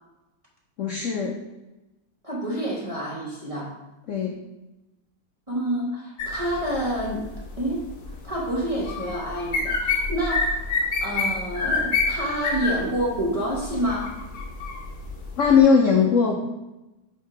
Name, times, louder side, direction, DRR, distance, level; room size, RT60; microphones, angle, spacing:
voice 1, 0.8-1.3 4.1-4.4 15.4-16.4, left 6 dB, 80° left, 1 dB, 0.6 m, -19 dB
voice 2, 2.2-3.8 5.5-7.3 7.6-7.8 8.2-10.6 11.0-14.2, right 1 dB, 25° right, -5 dB, 0.8 m, -28 dB
sound 1, 6.2-15.6, left 3 dB, 50° left, 1.0 m, -28 dB
5.3 x 4.6 x 4.8 m, 1.0 s
omnidirectional pair, 2.2 m